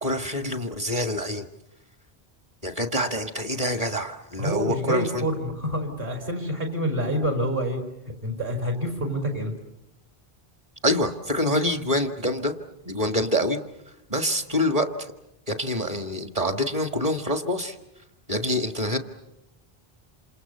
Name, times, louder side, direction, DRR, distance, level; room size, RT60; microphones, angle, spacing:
voice 1, 0.0-1.5 2.6-5.2 10.8-12.5 12.9-13.6 14.1-14.9 15.5-17.8 18.3-19.0, left 1 dB, 35° right, 7 dB, 1.8 m, -26 dB
voice 2, 4.4-7.8 8.2-9.5, equal, 60° right, 3 dB, 5.4 m, -27 dB
28.0 x 27.0 x 6.9 m, 0.87 s
omnidirectional pair, 1.0 m